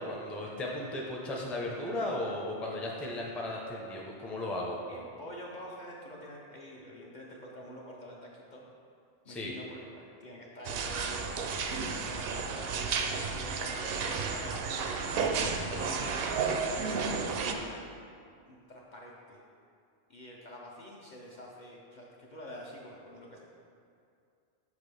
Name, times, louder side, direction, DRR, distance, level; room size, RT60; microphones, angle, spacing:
voice 1, 0.0-4.8 9.3-9.5, left 1 dB, ahead, -3 dB, 0.5 m, -35 dB
voice 2, 4.9-8.6 9.2-13.0 13.3-15.2 15.6-17.8 18.5-19.4 20.1-23.4, equal, 45° left, -3 dB, 0.7 m, -47 dB
sound 1, 10.6-17.5, right 5 dB, 65° right, 0.7 m, -32 dB
6.7 x 5.9 x 3.3 m, 2.4 s
omnidirectional pair, 1.2 m